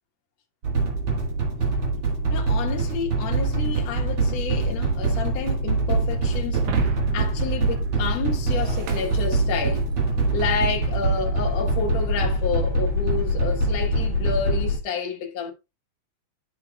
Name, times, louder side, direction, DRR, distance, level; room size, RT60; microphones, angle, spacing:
sound 1, 0.6-14.8, right 2 dB, 45° right, 1.9 m, -24 dB
voice 1, 2.3-6.6 7.1-9.9 10.3-15.5, left 5 dB, 55° left, 2.3 m, -30 dB
Shatter, 6.5-10.0, right 5 dB, 85° right, 3.0 m, -35 dB
12.0 x 5.6 x 2.3 m
omnidirectional pair, 4.0 m